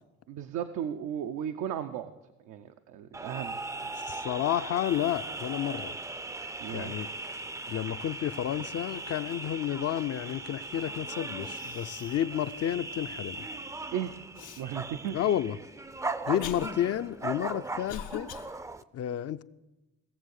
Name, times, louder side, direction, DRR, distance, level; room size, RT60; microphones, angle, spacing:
voice 1, 0.3-2.1 2.4-3.6 6.6-6.9 13.9-14.1 14.6-15.2, right 9 dB, 90° right, 0.6 m, -35 dB
sound 1, 3.1-18.8, right 2 dB, 10° right, 0.4 m, -39 dB
voice 2, 4.0-6.0 6.4-7.1 7.7-13.5 15.1-15.6 16.3-18.3 18.9-19.4, left 11 dB, 55° left, 0.5 m, -31 dB
Cough, 11.0-11.1 11.4-12.3 12.8-12.9 14.4-14.6 15.4-18.5, left 9 dB, 90° left, 0.9 m, -43 dB
17.0 x 7.0 x 6.5 m
cardioid pair, 90°, 30 cm